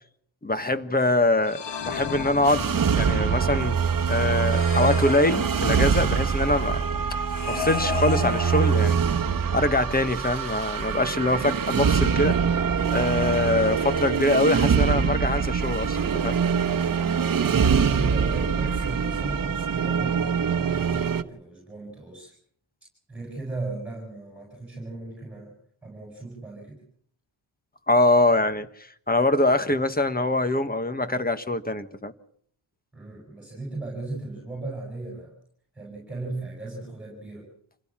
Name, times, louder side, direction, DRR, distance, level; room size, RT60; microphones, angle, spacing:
voice 1, 0.4-3.8 4.1-6.8 7.1-7.2 7.5-9.2 9.5-12.4 12.9-16.4 27.9-28.7 29.1-32.1, left 2 dB, 20° left, 1.4 m, -24 dB
sound 1, 1.4-3.1 4.4-6.1 7.3-9.2, left 8 dB, 65° left, 1.5 m, -34 dB
sound 2, 2.4-21.2, right 6 dB, 45° right, 1.1 m, -24 dB
voice 2, 16.9-22.3 23.1-25.5 25.8-26.8 32.9-35.3 35.7-37.5, right 2 dB, 5° right, 7.2 m, -36 dB
27.0 x 17.0 x 7.4 m
wide cardioid pair, 155°, 46 cm